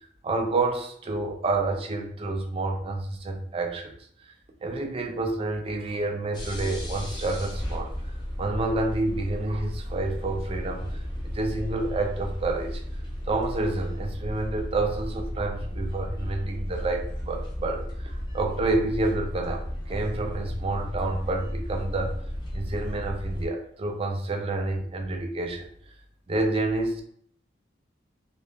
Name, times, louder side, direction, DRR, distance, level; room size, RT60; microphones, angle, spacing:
voice 1, 0.2-3.9 4.2-4.3 4.6-8.1 8.4-11.0 11.2-12.8 13.3-22.2 22.5-25.9 26.3-27.0, right 2 dB, 30° right, 2 dB, 0.4 m, -29 dB
sound 1, 6.3-23.5, equal, 25° left, 0.5 m, -34 dB
2.3 x 2.1 x 3.3 m, 0.63 s
head